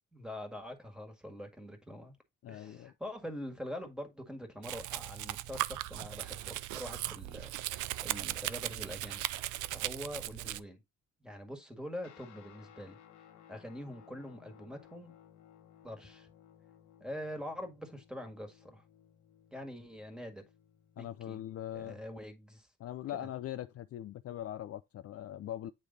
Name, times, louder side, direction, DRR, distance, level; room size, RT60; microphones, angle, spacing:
voice 1, 0.1-2.2 2.5-9.2 9.7-10.8 11.2-13.0 13.5-15.1 15.8-16.3 17.0-18.8 19.5-20.4 21.0-21.4 21.7-22.7 23.2-23.3, equal, ahead, 1.8 m, -44 dB
voice 2, 2.4-2.9 21.0-22.0 22.8-25.7, left 12 dB, 50° left, 0.4 m, -41 dB
Domestic sounds home sounds, 4.6-10.6, right 15 dB, 80° right, 0.5 m, -38 dB
Guitar, 12.0-21.6, left 10 dB, 75° left, 1.0 m, -60 dB
8.7 x 3.3 x 3.9 m
cardioid pair, 90°, 30 cm